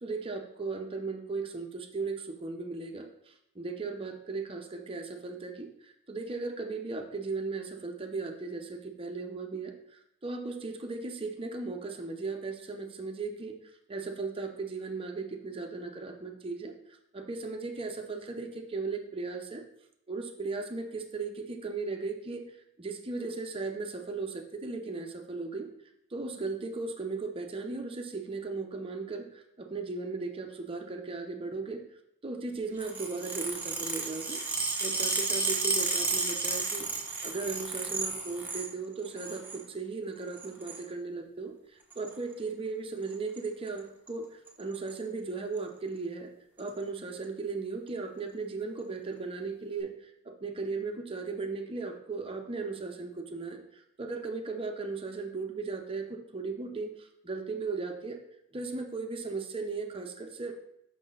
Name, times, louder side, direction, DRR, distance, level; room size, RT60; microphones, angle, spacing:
voice 1, 0.0-13.6 13.9-19.6 20.1-25.7 26.1-31.8 32.2-34.4 34.8-36.9 37.2-44.3 44.6-46.3 46.6-58.2 58.5-60.5, right 4 dB, 25° right, 3 dB, 0.7 m, -37 dB
sound 1, 32.8-38.7 39.0-39.6 40.3-40.8 41.9-42.1 43.1-43.4 43.7-43.8 44.1-44.2 44.5-44.9 45.6-45.7 46.6-46.7, right 3 dB, 10° right, 1.0 m, -32 dB
6.0 x 5.4 x 3.9 m, 0.77 s
head